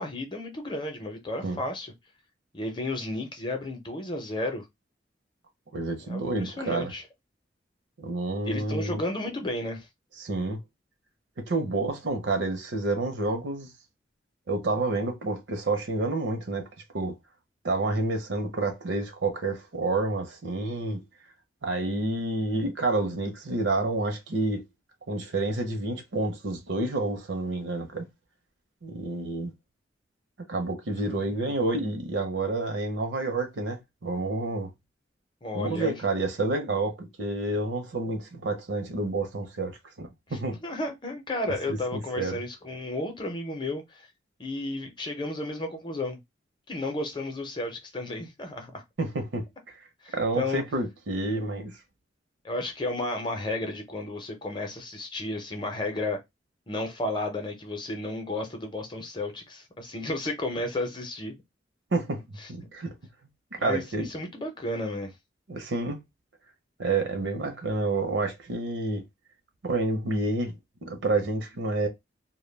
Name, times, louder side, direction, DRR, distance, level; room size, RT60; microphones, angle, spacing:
voice 1, 0.0-1.9 2.5-4.7 6.1-7.0 8.4-9.9 31.0-31.5 35.4-36.0 40.3-44.1 44.4-46.2 46.7-48.8 50.0-50.6 52.4-56.2 56.7-61.3 63.6-65.1, left 2 dB, 25° left, 0.6 m, -33 dB
voice 2, 5.7-6.9 8.0-9.0 10.2-10.6 11.5-13.7 14.5-16.7 16.9-17.2 17.6-21.0 21.6-24.6 25.1-28.1 28.8-29.5 30.5-34.7 35.5-40.6 41.7-42.4 49.0-49.5 50.1-51.8 61.9-62.9 63.5-64.1 65.5-66.0 66.8-69.0 69.6-70.6 70.8-71.9, right 2 dB, 75° right, 0.7 m, -29 dB
2.2 x 2.1 x 3.2 m
head